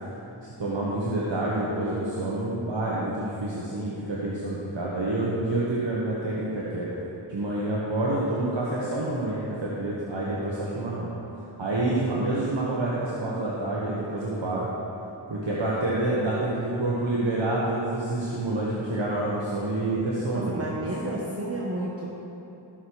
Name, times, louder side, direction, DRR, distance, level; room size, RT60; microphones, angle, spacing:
voice 1, 0.4-6.9 7.3-11.1 11.6-14.7 15.3-20.6, right 2 dB, 70° right, -6 dB, 1.6 m, -28 dB
voice 2, 20.3-22.1, right 1 dB, 30° right, -4 dB, 1.3 m, -31 dB
15.5 x 6.4 x 4.8 m, 2.9 s
wide cardioid pair, 45°, 45 cm